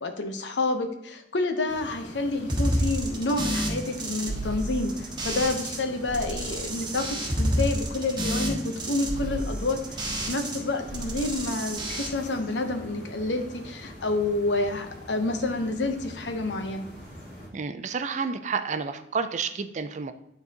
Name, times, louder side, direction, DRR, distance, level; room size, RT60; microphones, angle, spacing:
voice 1, 0.0-16.9, left 2 dB, 90° left, 6 dB, 0.8 m, -29 dB
sound 1, 1.7-17.5, equal, 50° left, 2.7 m, -44 dB
sound 2, 2.5-5.8 6.1-10.6 10.9-12.1, right 1 dB, 25° right, 1.2 m, -30 dB
voice 2, 17.5-20.1, right 5 dB, 45° right, 10 dB, 0.4 m, -30 dB
10.5 x 4.0 x 2.8 m, 0.83 s
head